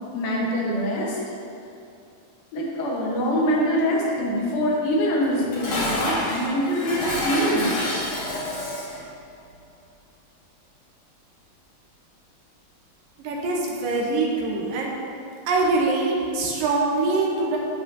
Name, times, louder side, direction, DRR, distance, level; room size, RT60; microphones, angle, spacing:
voice 1, 0.1-1.2 2.5-7.7, equal, 80° left, -4 dB, 3.0 m, -24 dB
Dishes pots and pans, 5.2-9.0, left 1 dB, 50° left, 1.9 m, -28 dB
voice 2, 13.2-15.0 15.5-17.6, right 3 dB, 75° right, -2 dB, 2.6 m, -23 dB
13.5 x 4.9 x 2.8 m, 2.5 s
omnidirectional pair, 4.1 m